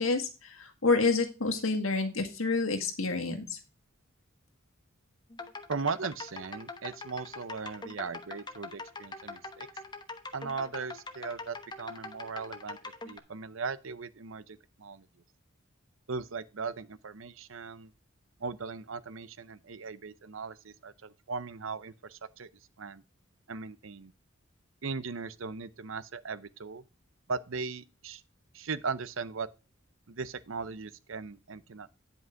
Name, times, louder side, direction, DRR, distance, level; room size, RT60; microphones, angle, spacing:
voice 1, 0.0-3.6, left 3 dB, 80° left, 1.8 m, -28 dB
sound 1, 5.3-13.2, left 3 dB, 20° left, 0.9 m, -43 dB
voice 2, 5.7-9.7 10.3-15.1 16.1-17.9 18.4-22.5 22.8-23.0 23.5-24.1 24.8-26.8 27.3-28.2 28.5-29.5 30.1-32.0, right 4 dB, 70° right, 0.7 m, -38 dB
10.0 x 5.4 x 4.6 m
head